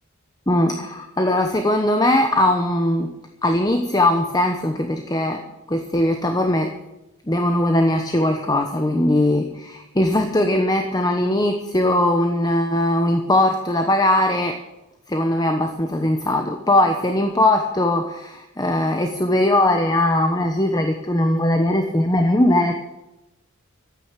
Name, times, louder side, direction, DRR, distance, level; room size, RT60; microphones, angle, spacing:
voice 1, 0.5-3.1 3.4-5.4 5.7-6.7 7.3-14.6 15.1-22.7, left 1 dB, 20° left, 5 dB, 1.0 m, -20 dB
13.0 x 9.1 x 8.3 m, 0.94 s
head